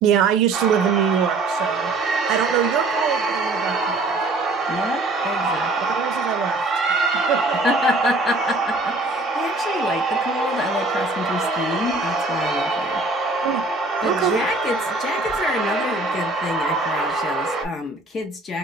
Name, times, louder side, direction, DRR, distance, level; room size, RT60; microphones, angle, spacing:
voice 1, 0.0-4.2 5.8-6.6 7.3-7.6 13.4-13.7 14.0-14.4, right 9 dB, 55° right, 0.4 m, -23 dB
sound 1, 0.5-17.6, right 3 dB, 25° right, 0.9 m, -24 dB
voice 2, 4.7-5.9 7.6-13.0 13.4-13.5 14.0-18.6, left 4 dB, 30° left, 0.6 m, -28 dB
2.8 x 2.2 x 3.9 m
supercardioid pair, 120°, 0 cm